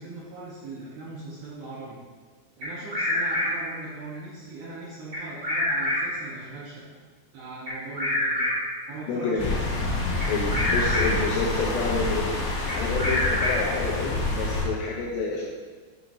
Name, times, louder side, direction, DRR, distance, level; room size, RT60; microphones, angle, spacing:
voice 1, 0.0-2.0 2.6-6.8 7.3-8.5 8.9-9.8, right 2 dB, 75° right, -6 dB, 2.5 m, -40 dB
Bird vocalization bird call bird song, 2.6-3.8 5.1-6.2 7.7-8.8 10.2-11.3 12.7-13.8, left 1 dB, 50° right, 1.2 m, -27 dB
voice 2, 9.1-9.6 10.3-12.3 12.7-15.5, left 4 dB, 85° left, -3 dB, 2.5 m, -28 dB
sound 1, 9.4-14.6, left 2 dB, 65° left, 2.6 m, -27 dB
8.9 x 5.7 x 2.6 m, 1.5 s
omnidirectional pair, 5.6 m